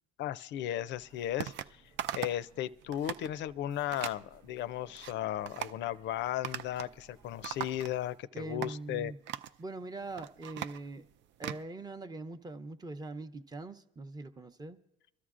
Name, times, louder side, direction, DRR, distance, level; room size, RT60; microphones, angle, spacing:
voice 1, 0.2-1.8 2.1-9.1, left 12 dB, 60° left, 0.5 m, -35 dB
sound 1, 0.9-7.9, right 4 dB, 80° right, 0.9 m, -62 dB
sound 2, 1.4-1.7 2.0-2.5 2.8-3.3 3.9-4.2 4.7-5.1 5.5-5.8 6.4-7.0 7.2-8.2 8.6-8.7 9.3-9.6 10.0-11.6, right 11 dB, 60° right, 0.4 m, -39 dB
voice 2, 8.3-9.2 9.6-11.1 11.4-14.8, right 2 dB, 20° right, 0.7 m, -42 dB
24.0 x 12.5 x 2.5 m
supercardioid pair, 85°, 21 cm